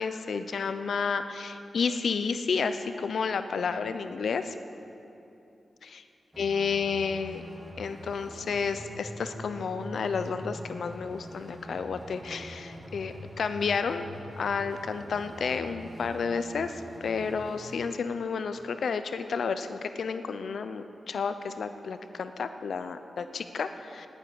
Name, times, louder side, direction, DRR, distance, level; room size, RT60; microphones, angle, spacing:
voice 1, 0.0-4.5 6.4-7.5 7.8-14.1 14.4-24.1, left 5 dB, 75° left, 10 dB, 0.7 m, -31 dB
sound 1, 6.3-17.8, equal, 10° right, 1.8 m, -44 dB
9.8 x 9.5 x 9.3 m, 2.8 s
wide cardioid pair, 100°, 0 cm